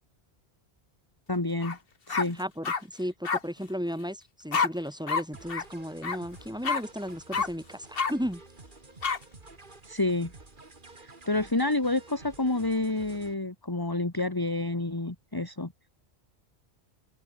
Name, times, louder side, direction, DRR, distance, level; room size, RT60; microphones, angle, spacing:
voice 1, 1.3-1.8 2.1-2.4 9.9-10.3 11.0-15.7, left 2 dB, 20° left, 1.9 m, -29 dB
sound 1, 1.6-1.8 2.1-2.8 3.2-3.4 4.5-4.7 5.1-5.2 5.5-5.6 6.0-6.2 6.6-6.8 7.3-7.5 7.9-8.1 9.0-9.2, left 5 dB, 60° left, 1.6 m, -27 dB
voice 2, 2.2-8.4, equal, 5° right, 3.8 m, -35 dB
sound 2, 5.3-13.3, right 3 dB, 50° right, 2.7 m, -50 dB
open air
omnidirectional pair, 1.1 m